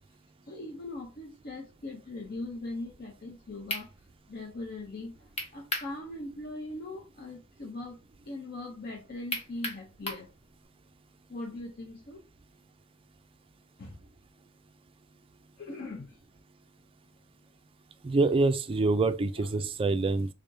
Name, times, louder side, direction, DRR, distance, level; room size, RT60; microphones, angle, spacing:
voice 1, 0.5-3.9 4.3-8.0 8.3-10.3 11.3-12.2 13.8-14.0 15.6-16.2 19.4-19.5, left 2 dB, 45° left, 0.7 m, -40 dB
sound 1, 3.3-3.4 3.7-3.9 5.4-5.9 6.3-6.4 9.3-10.3, left 2 dB, 30° left, 0.9 m, -34 dB
voice 2, 18.0-20.3, right 3 dB, 25° right, 0.4 m, -26 dB
3.6 x 3.4 x 2.6 m
head